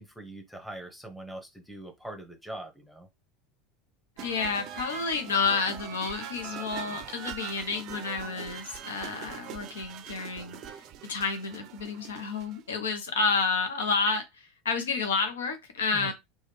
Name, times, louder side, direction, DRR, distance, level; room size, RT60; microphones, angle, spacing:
voice 1, 0.0-3.1 15.9-16.1, right 1 dB, ahead, 0.9 m, -42 dB
voice 2, 4.2-10.6 11.1-16.1, left 4 dB, 75° left, 0.6 m, -30 dB
sound 1, 4.2-12.7, right 9 dB, 50° right, 0.4 m, -42 dB
3.1 x 2.2 x 3.2 m
figure-of-eight pair, 80°, 0 cm